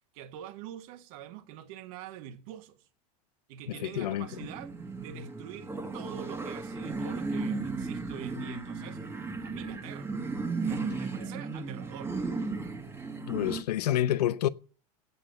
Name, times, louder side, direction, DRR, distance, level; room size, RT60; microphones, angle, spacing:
voice 1, 0.1-2.9 3.5-4.7 5.0-9.0 9.4-10.2 10.6-12.2, right 10 dB, 65° right, 1.5 m, -45 dB
voice 2, 3.7-4.3 13.2-14.5, left 12 dB, 90° left, 0.7 m, -28 dB
sound 1, 4.0-13.6, right 3 dB, 10° right, 1.4 m, -35 dB
8.5 x 8.0 x 9.2 m
supercardioid pair, 125°, 20 cm